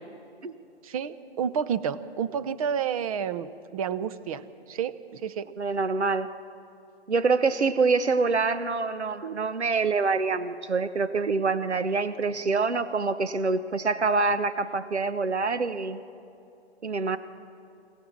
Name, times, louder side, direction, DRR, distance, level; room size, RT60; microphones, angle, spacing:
voice 1, 0.8-5.5, right 7 dB, 35° right, 14 dB, 0.8 m, -30 dB
voice 2, 5.6-6.3 7.1-16.0 16.8-17.2, right 4 dB, 85° right, 12 dB, 1.1 m, -26 dB
24.0 x 17.5 x 7.4 m, 2.6 s
figure-of-eight pair, 135°, 33 cm